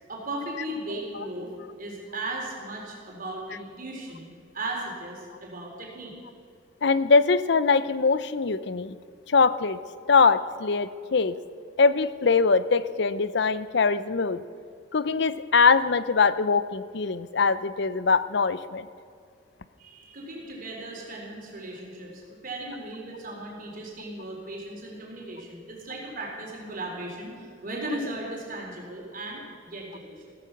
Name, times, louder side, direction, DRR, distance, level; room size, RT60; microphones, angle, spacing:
voice 1, 0.1-1.5 1.8-4.3 4.5-6.1 19.8-30.3, right 2 dB, 50° right, -1 dB, 4.1 m, -37 dB
voice 2, 6.8-9.0 9.3-9.8 10.1-11.4 11.8-14.4 14.9-18.9, left 4 dB, 65° left, 15 dB, 0.6 m, -22 dB
15.5 x 15.0 x 5.9 m, 2.3 s
head